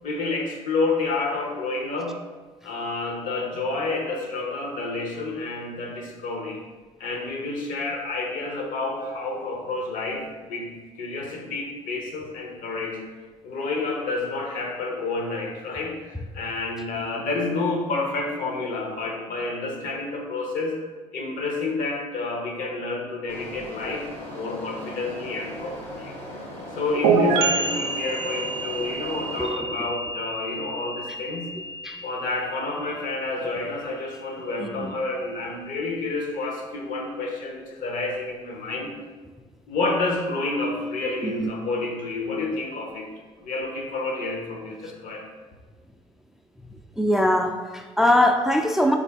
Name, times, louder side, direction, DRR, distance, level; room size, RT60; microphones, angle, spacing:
voice 1, 0.0-2.2 2.6-6.6 7.0-10.7 11.0-13.0 13.4-20.8 21.1-26.1 26.7-31.5 32.0-38.9 39.7-43.1 43.4-45.2, left 3 dB, 65° left, 1 dB, 0.8 m, -29 dB
sound 1, 23.3-29.5, left 1 dB, 85° left, 1.4 m, -38 dB
sound 2, 27.0-34.6, right 4 dB, 85° right, 0.4 m, -28 dB
voice 2, 34.6-34.9 41.2-41.5 47.0-49.0, left 1 dB, 5° right, 4 dB, 0.3 m, -22 dB
3.8 x 2.5 x 3.4 m, 1.4 s
hypercardioid pair, 55°, 15 cm